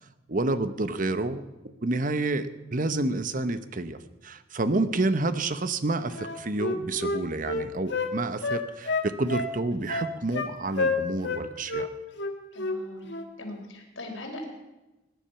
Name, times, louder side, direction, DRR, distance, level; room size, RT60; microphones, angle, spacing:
voice 1, 0.3-1.4 1.8-11.9, right 2 dB, 45° right, 12 dB, 0.9 m, -29 dB
Wind instrument woodwind instrument, 6.2-8.1 8.4-9.5 9.9-10.5 10.8-11.4 11.7-11.9 12.2-12.8 13.1-13.3, left 3 dB, 65° left, 1.6 m, -29 dB
voice 2, 12.5-13.1 13.4-14.4, left 1 dB, 85° left, 1 dB, 4.2 m, -40 dB
20.5 x 10.5 x 5.7 m, 1.0 s
head